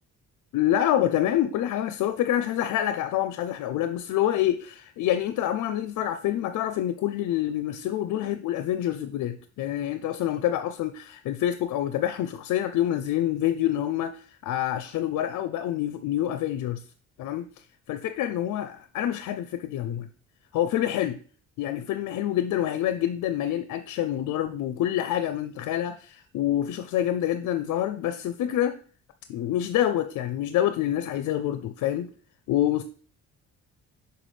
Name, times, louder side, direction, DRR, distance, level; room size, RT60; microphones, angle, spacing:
voice 1, 0.5-16.8 17.2-17.5 17.9-20.1 20.5-21.2 21.6-28.8 29.3-32.1 32.5-32.8, left 12 dB, 80° left, 0.5 m, -27 dB
5.9 x 5.6 x 3.3 m
cardioid pair, 90°, 30 cm